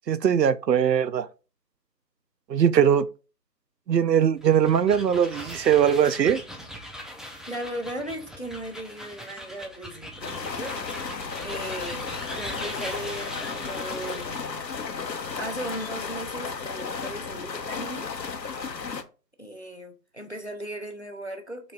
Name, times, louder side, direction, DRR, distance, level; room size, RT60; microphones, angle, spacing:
voice 1, 0.1-1.3 2.5-3.1 3.9-6.4, right 8 dB, 80° right, 0.6 m, -21 dB
sound 1, 4.4-14.5, equal, ahead, 0.4 m, -41 dB
voice 2, 7.5-10.8 11.4-14.4 15.4-18.1 19.4-21.7, right 1 dB, 45° left, 0.6 m, -37 dB
sound 2, 10.2-19.0, left 5 dB, 85° left, 0.8 m, -34 dB
4.0 x 3.3 x 3.7 m
figure-of-eight pair, 180°, 49 cm